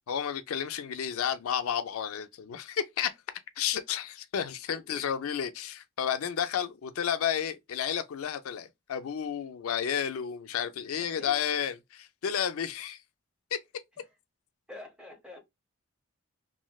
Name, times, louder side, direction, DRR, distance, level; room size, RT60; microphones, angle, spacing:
voice 1, 0.1-3.1 3.6-13.0 13.5-13.6, left 8 dB, 85° left, 0.4 m, -31 dB
voice 2, 4.7-5.0 11.0-11.3 14.7-15.4, left 2 dB, 5° right, 0.8 m, -46 dB
3.1 x 2.6 x 2.2 m
head